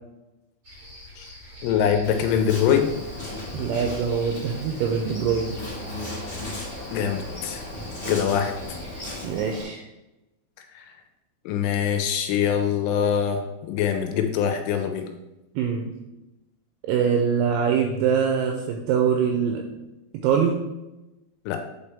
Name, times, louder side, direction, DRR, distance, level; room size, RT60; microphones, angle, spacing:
sound 1, 0.6-9.1, left 1 dB, 55° right, 1.4 m, -42 dB
voice 1, 1.6-2.9 6.9-7.6 8.1-8.5 10.6-10.8 11.5-15.0 21.5-21.6, left 8 dB, 85° left, 5 dB, 2.9 m, -23 dB
Insect, 2.0-9.6, left 1 dB, 55° left, 0.8 m, -36 dB
voice 2, 3.5-5.5 9.2-9.8 15.6-15.9 16.9-19.8 20.2-20.6, right 7 dB, 85° right, 2 dB, 2.7 m, -23 dB
8.5 x 4.2 x 3.4 m, 0.97 s
omnidirectional pair, 6.0 m